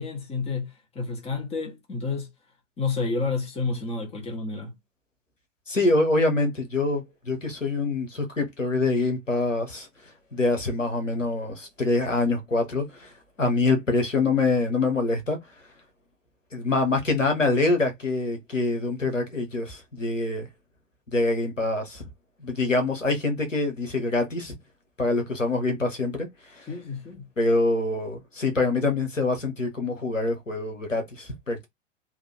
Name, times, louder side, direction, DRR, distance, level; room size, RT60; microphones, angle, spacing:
voice 1, 0.0-2.3 2.8-4.7 26.7-27.3, left 4 dB, 15° left, 1.3 m, -30 dB
voice 2, 5.7-9.9 10.3-13.1 13.4-15.4 16.5-20.5 21.1-22.0 22.4-24.5 25.0-26.7 27.4-31.7, left 3 dB, 90° left, 1.6 m, -25 dB
3.5 x 2.8 x 3.5 m
figure-of-eight pair, 95°, 37 cm